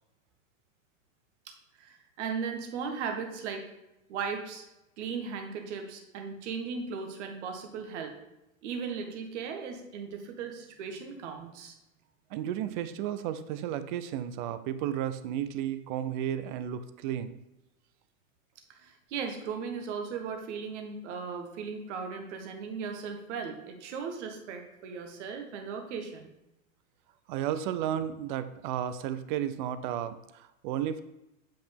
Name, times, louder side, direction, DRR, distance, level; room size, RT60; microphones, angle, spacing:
voice 1, 1.8-3.6 4.1-4.6 5.0-8.1 8.6-11.7 18.7-26.3, right 6 dB, 55° right, 4 dB, 1.4 m, -37 dB
voice 2, 12.3-17.4 27.3-31.0, right 10 dB, 35° right, 12 dB, 0.5 m, -33 dB
8.0 x 5.1 x 3.5 m, 0.90 s
hypercardioid pair, 120°, 42 cm